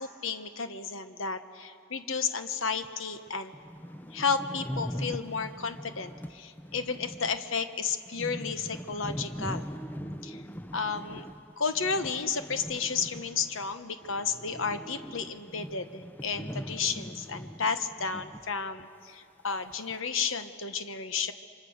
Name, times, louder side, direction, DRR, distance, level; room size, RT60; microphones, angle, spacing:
voice 1, 0.0-3.5 4.1-9.7 10.2-10.4 10.7-11.3 11.6-21.3, left 5 dB, 65° left, 9 dB, 1.2 m, -32 dB
sound 1, 2.8-2.9 3.3-3.4 3.5-13.8 14.0-18.5 18.8-18.9 19.5-20.0, equal, 10° left, 0.5 m, -41 dB
29.0 x 24.5 x 6.5 m, 2.3 s
head